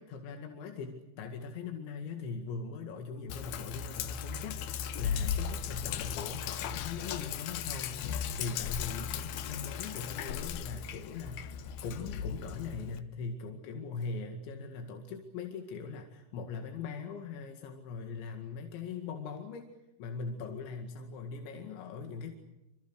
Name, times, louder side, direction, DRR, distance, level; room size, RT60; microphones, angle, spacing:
voice 1, 0.0-19.7 20.0-22.3, left 4 dB, 85° left, 4 dB, 4.5 m, -41 dB
Sink (filling or washing), 3.3-13.0, left 8 dB, 70° left, 2.8 m, -37 dB
27.0 x 26.5 x 6.5 m, 0.92 s
omnidirectional pair, 5.1 m